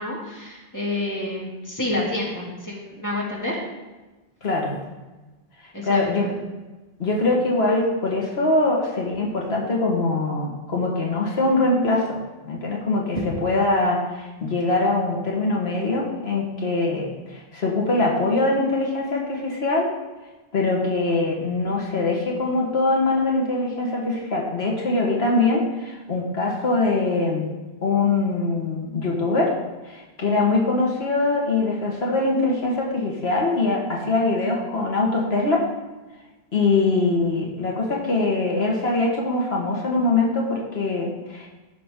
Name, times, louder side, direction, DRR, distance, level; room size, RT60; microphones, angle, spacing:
voice 1, 0.0-3.6 5.7-6.3, left 1 dB, 15° left, -5 dB, 2.5 m, -29 dB
voice 2, 4.4-4.7 5.8-6.3 7.0-19.9 20.5-27.5 27.8-29.5 29.9-35.6 36.5-41.5, left 2 dB, 80° left, -2 dB, 1.8 m, -23 dB
14.5 x 5.9 x 3.8 m, 1.2 s
omnidirectional pair, 1.1 m